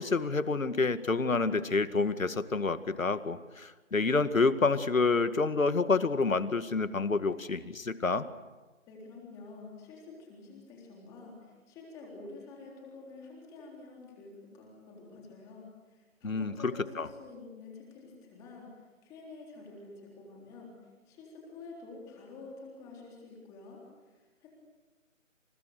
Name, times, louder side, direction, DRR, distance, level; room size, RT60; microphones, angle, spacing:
voice 1, 0.0-8.3 16.2-17.1, left 4 dB, 75° left, 11 dB, 2.1 m, -28 dB
voice 2, 8.9-23.8 24.1-24.5, left 3 dB, 10° left, -2 dB, 3.7 m, -49 dB
29.5 x 29.0 x 6.7 m, 1.2 s
figure-of-eight pair, 165°, 40 cm